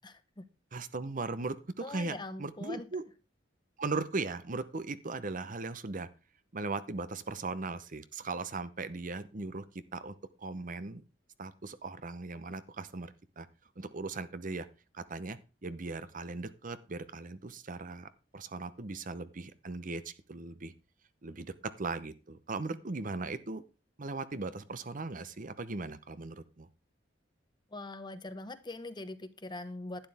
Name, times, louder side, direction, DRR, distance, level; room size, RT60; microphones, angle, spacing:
voice 1, 0.0-0.5 1.8-2.9 27.7-30.1, left 2 dB, 25° left, 12 dB, 0.9 m, -42 dB
voice 2, 0.7-3.0 3.8-6.1 6.5-9.6 9.9-11.0 11.4-13.5 13.8-14.7 14.9-20.7 21.2-23.6 24.0-26.7, right 3 dB, 45° right, 13 dB, 0.8 m, -38 dB
11.5 x 10.0 x 3.5 m, 0.31 s
head